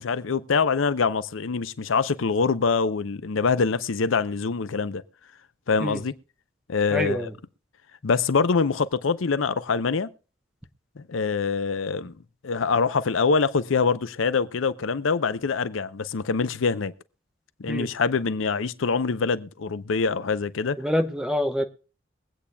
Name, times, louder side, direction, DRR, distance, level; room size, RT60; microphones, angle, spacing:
voice 1, 0.0-5.0 5.7-6.2 6.7-7.3 8.0-10.1 11.0-12.1 12.4-16.9 17.6-20.8, left 5 dB, 80° left, 0.6 m, -24 dB
voice 2, 6.9-7.3 17.7-17.9 20.8-21.6, equal, 5° right, 0.8 m, -26 dB
23.0 x 8.4 x 2.2 m
head